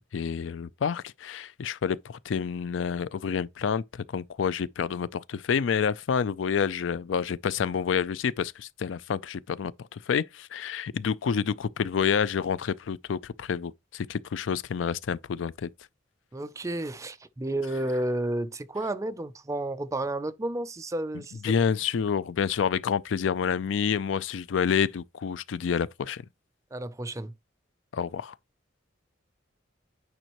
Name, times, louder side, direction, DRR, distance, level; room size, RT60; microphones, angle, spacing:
voice 1, 0.1-15.7 21.4-26.2 27.9-28.3, left 7 dB, 75° left, 0.4 m, -28 dB
voice 2, 16.3-21.4 26.7-27.3, right 1 dB, 15° right, 0.4 m, -31 dB
9.0 x 5.3 x 3.0 m
head